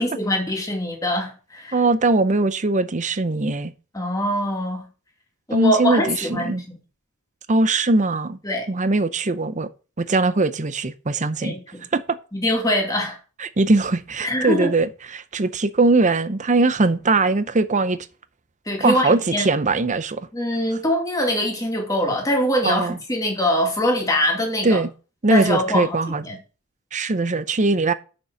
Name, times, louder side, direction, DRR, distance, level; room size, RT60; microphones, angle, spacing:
voice 1, 0.0-1.8 3.9-4.9 5.5-6.6 8.4-8.7 11.4-11.6 12.3-13.2 14.2-14.7 18.7-19.5 20.3-24.8 25.3-26.0 26.2-26.4, left 1 dB, 15° left, 2.4 m, -23 dB
voice 2, 1.7-3.7 5.5-6.6 7.5-8.4 8.7-9.7 10.0-11.5 11.9-12.2 13.4-18.0 18.8-20.2 22.6-23.0 24.6-24.9 25.2-26.2 26.9-27.9, right 3 dB, 35° right, 0.7 m, -20 dB
6.8 x 6.4 x 7.0 m
head